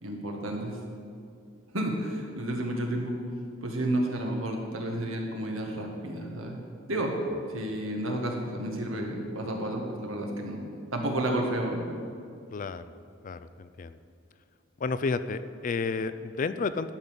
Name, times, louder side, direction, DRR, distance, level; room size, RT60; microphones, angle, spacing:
voice 1, 0.0-0.8 1.7-3.1 3.6-6.6 6.9-7.1 7.5-10.6 10.9-11.8, right 1 dB, 80° right, 1 dB, 1.7 m, -31 dB
voice 2, 12.5-12.8 13.2-13.9 14.8-16.9, left 4 dB, 40° left, 13 dB, 0.3 m, -31 dB
12.0 x 5.3 x 7.3 m, 2.4 s
head